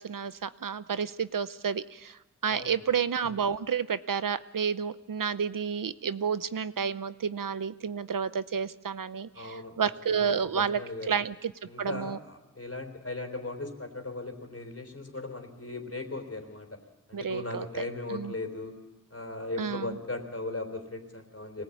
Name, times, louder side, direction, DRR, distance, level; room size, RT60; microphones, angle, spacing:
voice 1, 0.0-10.8 11.1-11.5 11.8-12.2 17.1-17.8 18.1-18.3 19.6-20.0, right 7 dB, 75° right, 14 dB, 0.7 m, -30 dB
voice 2, 2.5-2.9 9.3-9.8 10.1-11.1 11.7-16.8 17.1-18.8 19.1-21.6, left 2 dB, 45° left, 4 dB, 3.8 m, -38 dB
25.0 x 18.5 x 8.5 m, 1.1 s
wide cardioid pair, 80°, 33 cm